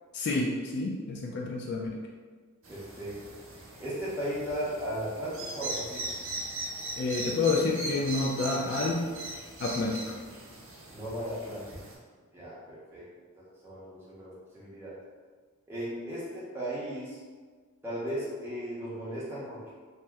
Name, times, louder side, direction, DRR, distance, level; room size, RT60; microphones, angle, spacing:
voice 1, 0.1-2.0 7.0-9.1 9.6-10.0, left 3 dB, 50° left, -1 dB, 0.3 m, -29 dB
sound 1, 2.6-11.9, right 2 dB, 60° right, 0.8 m, -39 dB
voice 2, 2.7-3.2 3.8-6.1 10.9-11.7 12.3-13.1 13.4-15.0 15.7-17.2 17.8-19.7, equal, 10° right, -9 dB, 0.8 m, -36 dB
2.8 x 2.1 x 3.4 m, 1.5 s
head